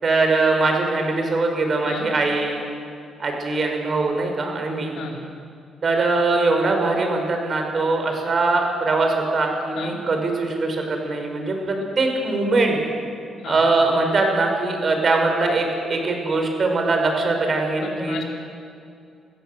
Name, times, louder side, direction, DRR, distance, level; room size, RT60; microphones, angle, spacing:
voice 1, 0.0-2.6 3.2-4.9 5.8-12.8 13.5-18.2, right 3 dB, 45° right, 3 dB, 5.1 m, -22 dB
voice 2, 17.8-18.2, left 6 dB, 75° left, 0 dB, 4.3 m, -33 dB
24.0 x 16.0 x 7.9 m, 2.4 s
cardioid pair, 90°, 0 cm